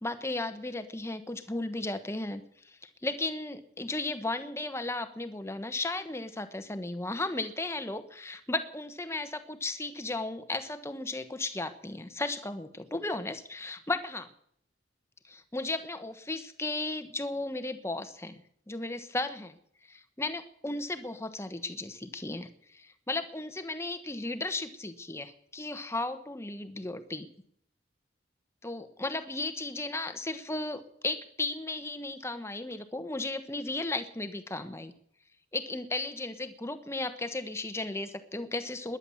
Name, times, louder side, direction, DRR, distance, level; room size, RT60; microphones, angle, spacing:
voice 1, 0.0-14.3 15.3-18.4 18.7-19.6 19.9-27.3 28.6-34.9 35.5-39.0, left 2 dB, 15° left, 10 dB, 1.0 m, -35 dB
20.0 x 9.9 x 7.1 m, 0.67 s
head